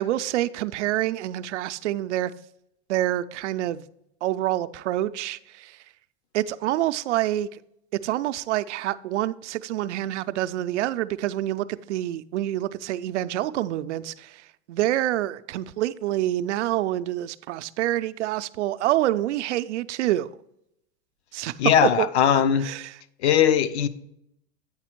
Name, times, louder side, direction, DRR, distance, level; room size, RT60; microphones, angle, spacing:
voice 1, 0.0-2.3 2.9-3.9 4.2-5.8 6.3-7.6 7.9-20.3 21.3-21.5 21.8-22.1 22.3-23.0, right 14 dB, 90° right, 0.5 m, -27 dB
voice 2, 21.6-22.7 23.2-23.9, left 9 dB, 70° left, 0.7 m, -19 dB
8.8 x 4.2 x 4.4 m
supercardioid pair, 140°, 34 cm